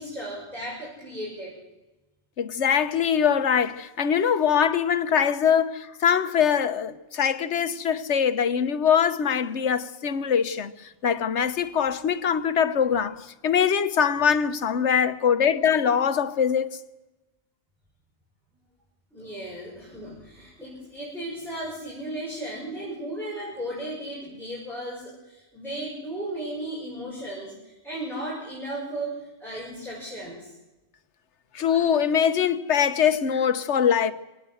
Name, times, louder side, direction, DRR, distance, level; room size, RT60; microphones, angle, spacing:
voice 1, 0.0-1.6 19.1-30.5, right 1 dB, ahead, 6.2 m, -35 dB
voice 2, 2.4-10.7 11.0-16.7 31.5-34.1, left 7 dB, 85° left, 1.3 m, -23 dB
23.5 x 18.0 x 7.9 m
omnidirectional pair, 1.2 m